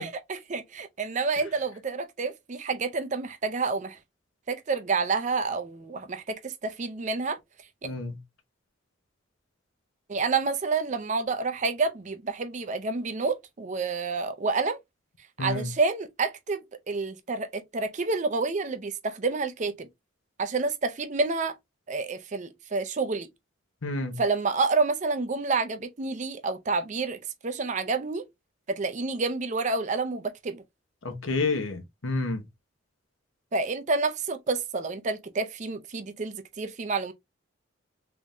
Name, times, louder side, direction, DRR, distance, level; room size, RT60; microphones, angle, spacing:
voice 1, 0.0-4.0 4.5-7.4 10.1-14.8 15.4-19.9 20.4-21.6 21.9-23.3 24.2-28.2 28.7-30.6 33.5-37.1, right 4 dB, 35° right, 0.5 m, -29 dB
voice 2, 7.8-8.1 15.4-15.7 23.8-24.2 31.0-32.4, left 3 dB, 85° left, 1.0 m, -29 dB
3.5 x 3.4 x 2.6 m
head